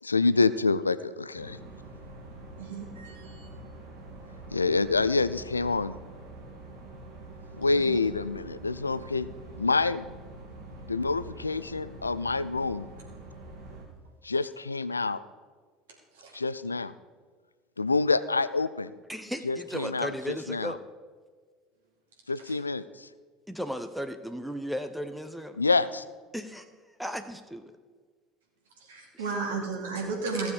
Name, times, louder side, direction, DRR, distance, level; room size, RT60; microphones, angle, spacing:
voice 1, 0.0-1.6 4.5-6.0 7.6-9.3 9.6-10.1 10.9-12.9 14.2-15.2 16.3-17.0 17.8-18.9 19.4-20.1 20.5-20.7 22.3-23.1 25.6-26.0, left 3 dB, 85° left, 16 dB, 0.3 m, -27 dB
sound 1, 1.3-13.8, right 2 dB, 55° right, 3.3 m, -45 dB
voice 2, 2.6-3.5 7.7-8.0 16.2-16.3 22.4-22.5 28.9-30.5, right 4 dB, 75° right, -1 dB, 2.7 m, -34 dB
voice 3, 19.1-20.8 23.5-25.6 26.3-27.7 29.1-29.3, equal, ahead, 9 dB, 0.8 m, -36 dB
15.5 x 7.2 x 4.9 m, 1.5 s
figure-of-eight pair, 65°, 0 cm